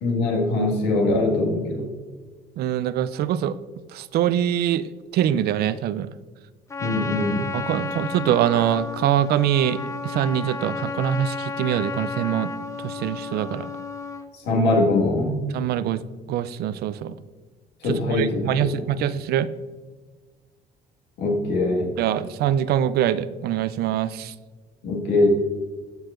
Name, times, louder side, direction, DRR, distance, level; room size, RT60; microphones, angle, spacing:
voice 1, 0.0-1.9 6.8-7.5 14.5-15.4 17.8-18.8 21.2-21.9 24.8-25.3, left 2 dB, 90° left, -1 dB, 1.8 m, -22 dB
voice 2, 2.6-3.6 3.9-6.1 7.5-12.5 12.8-13.7 15.5-16.0 16.3-17.2 17.9-19.5 22.0-24.3, right 10 dB, 70° right, 15 dB, 0.4 m, -24 dB
Trumpet, 6.7-14.3, left 4 dB, 20° left, 0.5 m, -32 dB
13.0 x 4.6 x 2.5 m, 1.4 s
cardioid pair, 110°, 17 cm